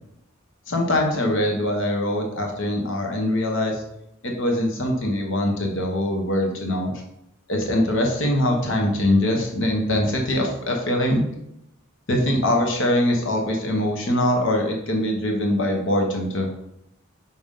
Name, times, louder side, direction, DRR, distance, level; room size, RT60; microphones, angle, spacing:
voice 1, 0.7-3.8 4.2-6.9 7.5-11.2 12.1-16.5, left 1 dB, 60° left, 1 dB, 1.1 m, -22 dB
5.9 x 5.2 x 3.8 m, 0.81 s
head